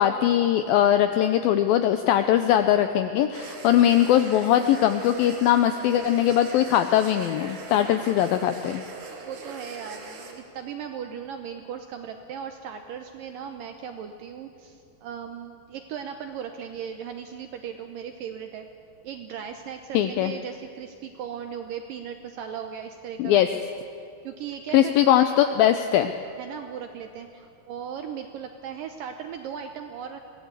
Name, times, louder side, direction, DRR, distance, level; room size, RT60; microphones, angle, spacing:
voice 1, 0.0-8.8 19.9-20.3 23.2-23.5 24.7-26.1, left 11 dB, 85° left, 9 dB, 2.1 m, -21 dB
sound 1, 3.3-10.3, right 3 dB, 55° right, 3.1 m, -41 dB
voice 2, 9.2-18.7 19.0-23.4 24.2-25.1 26.4-30.3, right 8 dB, 75° right, 6 dB, 2.1 m, -37 dB
23.0 x 17.5 x 8.3 m, 2.4 s
omnidirectional pair, 4.9 m